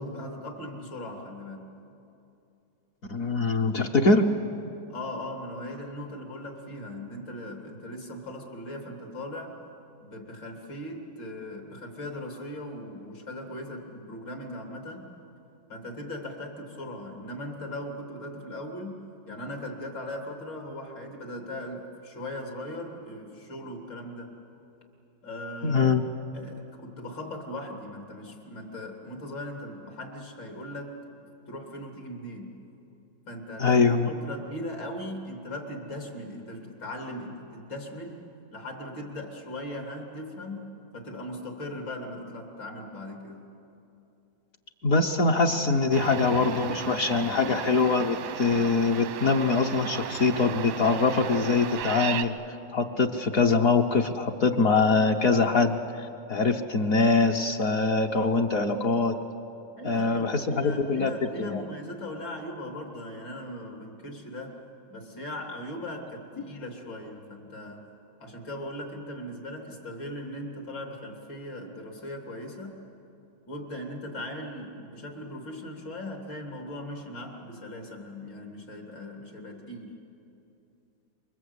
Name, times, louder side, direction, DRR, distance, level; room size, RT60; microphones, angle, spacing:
voice 1, 0.0-1.7 4.9-9.6 10.0-15.1 15.7-19.0 19.3-24.3 25.2-26.0 26.3-31.0 31.5-32.5 33.3-38.2 38.5-40.7 40.9-43.4 59.8-64.6 64.9-67.8 68.2-72.8 73.5-80.0, left 1 dB, 70° left, 2 dB, 3.8 m, -39 dB
voice 2, 3.1-4.3 25.6-26.0 33.6-34.1 44.8-59.2 59.8-61.1 61.4-61.6, left 4 dB, 50° left, 2 dB, 1.3 m, -23 dB
sound 1, 45.9-52.3, right 9 dB, 90° right, 1.7 m, -35 dB
28.0 x 24.0 x 8.2 m, 2.7 s
omnidirectional pair, 2.1 m